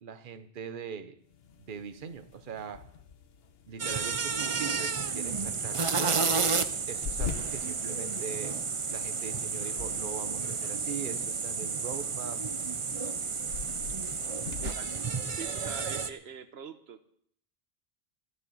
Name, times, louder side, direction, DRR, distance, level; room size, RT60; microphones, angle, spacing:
voice 1, 0.0-1.2 1.7-2.9 3.7-6.5 6.9-8.6 8.9-12.4, right 7 dB, 55° right, 11 dB, 1.0 m, -41 dB
sound 1, 1.2-16.0, left 6 dB, 75° left, 1.2 m, -45 dB
sound 2, 3.8-16.1, right 5 dB, 35° right, 0.7 m, -31 dB
voice 2, 14.6-15.1 15.3-17.0, right 7 dB, 85° right, 11 dB, 1.2 m, -44 dB
13.5 x 7.9 x 9.9 m, 0.64 s
omnidirectional pair, 1.0 m